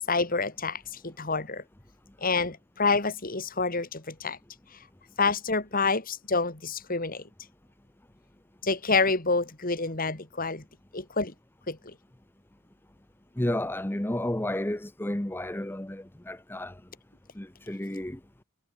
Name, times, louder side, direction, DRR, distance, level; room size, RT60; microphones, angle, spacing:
voice 1, 0.1-1.6 2.2-4.4 5.2-7.2 8.6-10.6 10.9-11.3 11.7-11.9, left 4 dB, 40° left, 2.8 m, -28 dB
voice 2, 13.4-16.7 17.4-18.2, left 1 dB, 10° left, 0.8 m, -31 dB
head